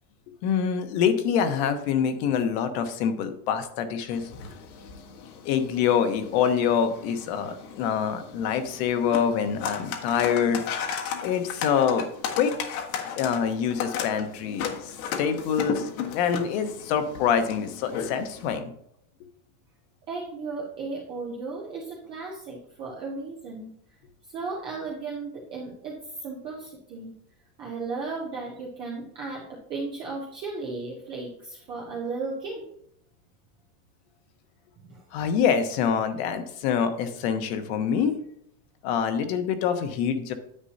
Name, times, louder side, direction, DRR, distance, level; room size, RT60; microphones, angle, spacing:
voice 1, 0.4-4.3 5.4-10.6 11.2-12.6 13.2-18.7 35.1-38.2 38.8-40.3, left 7 dB, 45° left, 8 dB, 1.1 m, -25 dB
sound 1, 4.1-18.6, left 7 dB, 70° left, 1.6 m, -35 dB
voice 2, 20.1-23.7 24.3-27.1 27.6-32.6 34.9-35.0, right 3 dB, 15° right, -3 dB, 0.3 m, -35 dB
9.8 x 8.2 x 2.7 m, 0.71 s
supercardioid pair, 165°, 45 cm